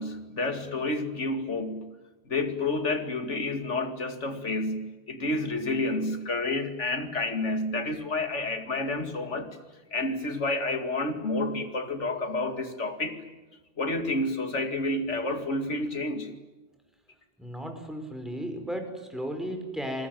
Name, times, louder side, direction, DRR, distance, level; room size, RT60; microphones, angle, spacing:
voice 1, 0.0-1.9 2.3-9.5 9.9-13.2 13.8-16.3, left 2 dB, 75° left, 8 dB, 2.7 m, -30 dB
voice 2, 17.4-20.1, equal, ahead, 5 dB, 5.1 m, -35 dB
28.0 x 20.5 x 9.4 m, 1.2 s
omnidirectional pair, 1.2 m